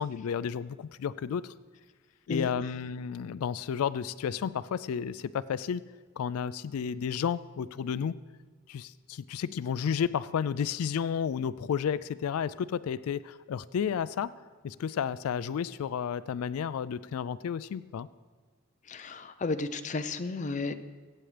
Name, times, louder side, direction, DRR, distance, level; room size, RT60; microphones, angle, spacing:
voice 1, 0.0-1.5 2.3-5.8 6.2-8.1 8.7-14.3 14.6-18.1, left 7 dB, 90° left, 16 dB, 0.3 m, -32 dB
voice 2, 18.8-20.7, left 3 dB, 35° left, 9 dB, 0.5 m, -33 dB
23.0 x 8.6 x 3.3 m, 1.5 s
head